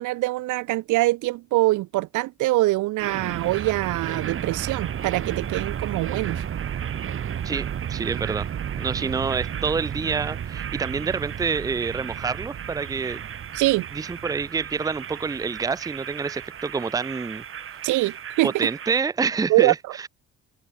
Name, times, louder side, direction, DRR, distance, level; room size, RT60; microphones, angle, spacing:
voice 1, 0.0-6.4 13.5-13.9 17.8-18.5 19.5-19.7, right 18 dB, 80° right, 0.5 m, -23 dB
sound 1, 3.0-19.0, right 9 dB, 45° right, 0.9 m, -33 dB
voice 2, 7.4-8.5 8.8-13.3 13.9-17.4 18.0-18.1 18.4-20.1, right 5 dB, 10° right, 0.5 m, -27 dB
cardioid pair, 90°, 30 cm